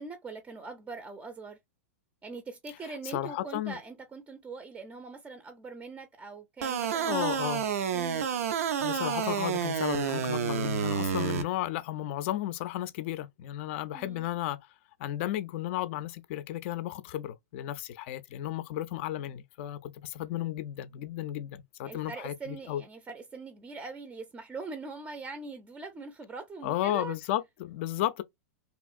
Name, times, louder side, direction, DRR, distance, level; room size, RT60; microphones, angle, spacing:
voice 1, 0.0-1.6 2.2-7.1 7.9-8.2 13.9-14.3 21.8-27.1, right 4 dB, 15° right, 0.5 m, -42 dB
voice 2, 3.0-3.8 7.0-7.7 8.8-14.6 15.0-22.8 26.6-28.2, left 13 dB, 55° left, 0.4 m, -33 dB
sound 1, 6.6-11.4, right 7 dB, 75° right, 0.4 m, -29 dB
2.9 x 2.4 x 2.4 m
hypercardioid pair, 110°, 8 cm